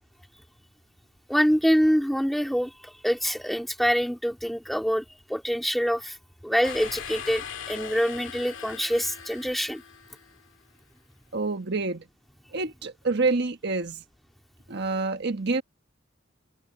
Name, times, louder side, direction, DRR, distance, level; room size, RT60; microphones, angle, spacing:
voice 1, 1.3-5.0 5.3-6.2 6.4-9.8, equal, ahead, 2.6 m, -25 dB
sound 1, 6.6-10.4, left 7 dB, 80° left, 2.1 m, -40 dB
voice 2, 11.3-12.0 12.5-14.0 14.7-15.6, right 3 dB, 60° right, 1.4 m, -27 dB
open air
head